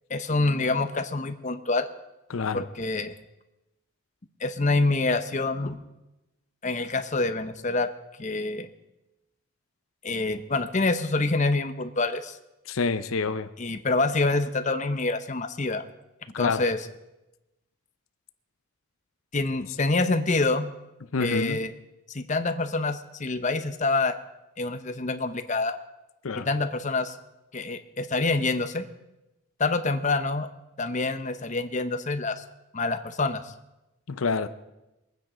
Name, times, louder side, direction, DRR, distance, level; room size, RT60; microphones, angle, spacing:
voice 1, 0.1-1.9 2.5-3.1 4.4-5.8 6.6-7.9 8.2-8.7 10.0-12.4 13.6-15.8 16.4-16.8 19.3-20.7 21.2-21.7 22.1-24.1 24.6-25.8 26.3-27.2 27.5-28.8 29.6-30.5 30.8-32.4 32.7-33.5, left 3 dB, 35° left, 0.8 m, -26 dB
voice 2, 2.3-2.6 12.7-13.5 16.3-16.6 21.1-21.6 26.2-26.5 34.1-34.5, left 4 dB, 70° left, 0.7 m, -27 dB
22.0 x 9.3 x 5.1 m
head